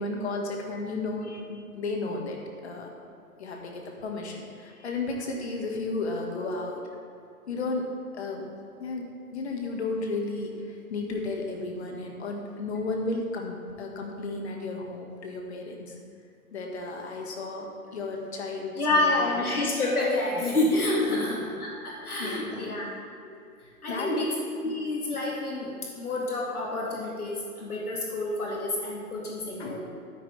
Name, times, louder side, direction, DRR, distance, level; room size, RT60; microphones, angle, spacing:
voice 1, 0.0-2.9 3.4-6.9 7.5-8.5 8.8-9.1 9.3-16.0 16.5-19.4 21.1-21.2 22.1-22.7 23.9-24.1 24.7-24.8 29.6-29.8, left 3 dB, 45° left, 1 dB, 1.9 m, -33 dB
voice 2, 18.8-22.9 23.2-23.4 23.8-24.3 24.6-29.8, left 2 dB, 75° left, -3 dB, 2.4 m, -28 dB
11.5 x 9.9 x 3.5 m, 2.4 s
hypercardioid pair, 150°, 45 cm